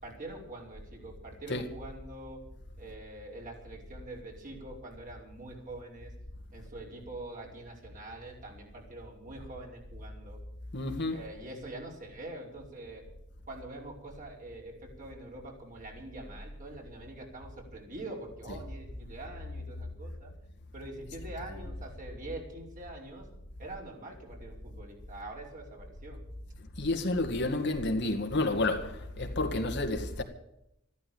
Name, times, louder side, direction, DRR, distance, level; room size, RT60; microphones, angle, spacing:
voice 1, 0.0-2.4 2.8-6.1 6.5-10.4 11.1-13.0 13.5-20.3 20.7-23.3 23.6-26.2, right 2 dB, 40° right, 5.1 m, -44 dB
voice 2, 10.7-11.2 26.8-30.2, left 2 dB, 55° left, 2.1 m, -30 dB
14.0 x 12.5 x 7.1 m
head